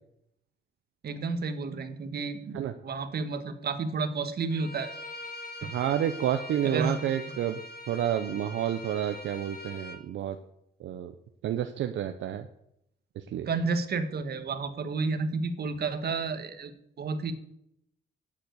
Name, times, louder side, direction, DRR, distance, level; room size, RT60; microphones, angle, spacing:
voice 1, 1.0-4.9 5.6-5.7 6.6-7.0 13.5-17.3, right 4 dB, 55° right, 9 dB, 1.6 m, -31 dB
Bowed string instrument, 4.5-10.0, left 1 dB, 50° left, 2.2 m, -43 dB
voice 2, 5.6-7.6 7.9-10.4 10.8-11.1 11.4-12.5 13.3-13.5, right 10 dB, 75° right, 7 dB, 0.8 m, -29 dB
10.5 x 7.6 x 8.1 m, 0.77 s
cardioid pair, 90°, 20 cm